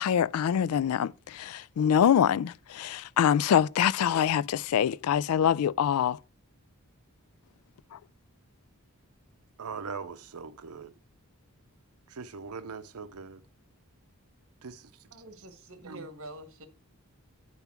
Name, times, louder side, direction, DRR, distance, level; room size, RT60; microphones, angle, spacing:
voice 1, 0.0-6.2 7.9-8.0, left 9 dB, 75° left, 0.3 m, -25 dB
voice 2, 9.6-10.9 12.1-13.4 14.6-14.9 15.8-16.1, right 5 dB, 80° right, 0.7 m, -41 dB
voice 3, 15.1-16.7, right 1 dB, 65° right, 1.4 m, -46 dB
9.1 x 3.6 x 5.9 m
head